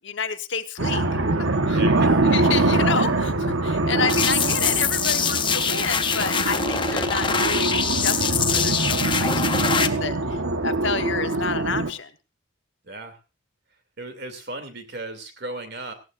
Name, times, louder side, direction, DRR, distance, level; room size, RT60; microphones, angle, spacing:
voice 1, 0.0-1.0 1.4-1.8 2.3-12.1, left 5 dB, 60° left, 8 dB, 1.1 m, -30 dB
sound 1, 0.8-11.9, right 2 dB, 75° right, 1.3 m, -23 dB
voice 2, 1.7-2.5 7.0-7.4 9.6-9.7 12.8-13.2 14.0-15.9, right 2 dB, 50° right, 7 dB, 2.7 m, -36 dB
sound 2, 4.1-9.9, left 6 dB, 25° left, 0.7 m, -24 dB
18.0 x 16.0 x 2.5 m, 0.29 s
head